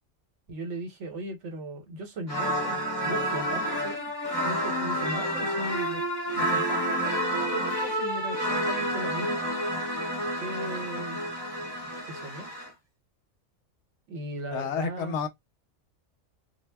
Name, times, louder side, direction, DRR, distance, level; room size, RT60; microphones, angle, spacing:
voice 1, 0.5-2.8 3.0-4.1 4.4-6.0 6.3-9.5 10.4-11.2 12.0-12.5 14.1-15.2, right 2 dB, 70° right, 1.1 m, -38 dB
sound 1, 2.3-12.7, equal, 20° left, 0.7 m, -29 dB
voice 2, 14.5-15.3, left 6 dB, 70° left, 0.8 m, -30 dB
2.2 x 2.1 x 3.3 m
omnidirectional pair, 1.3 m